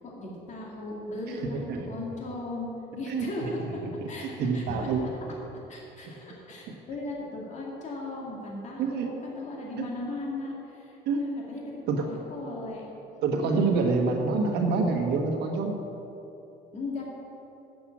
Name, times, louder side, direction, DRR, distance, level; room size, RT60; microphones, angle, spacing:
voice 1, 0.0-3.6 4.1-5.1 5.7-12.9 13.4-14.2 16.7-17.0, left 2 dB, 45° left, -3 dB, 2.4 m, -37 dB
voice 2, 1.3-1.9 3.1-3.7 4.2-5.1 8.8-9.1 9.8-9.9 11.0-11.3 11.9-12.1 13.2-15.8, right 4 dB, 80° right, 2 dB, 1.4 m, -27 dB
7.8 x 7.4 x 8.6 m, 3.0 s
cardioid pair, 110°, 17 cm